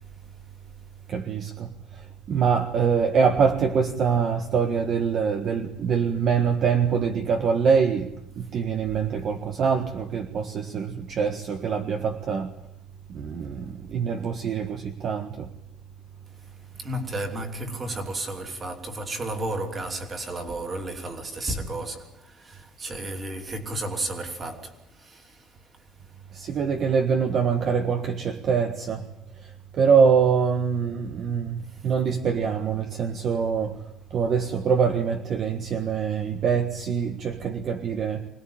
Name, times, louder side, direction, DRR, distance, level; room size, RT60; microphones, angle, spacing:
voice 1, 1.1-1.7 2.3-8.1 8.4-12.5 13.1-15.5 26.3-29.1 29.7-33.8 34.1-38.3, right 6 dB, 40° right, 1.5 m, -24 dB
voice 2, 16.8-25.6, right 2 dB, 20° right, 3.1 m, -33 dB
25.5 x 20.0 x 8.9 m
cardioid pair, 170°, 0 cm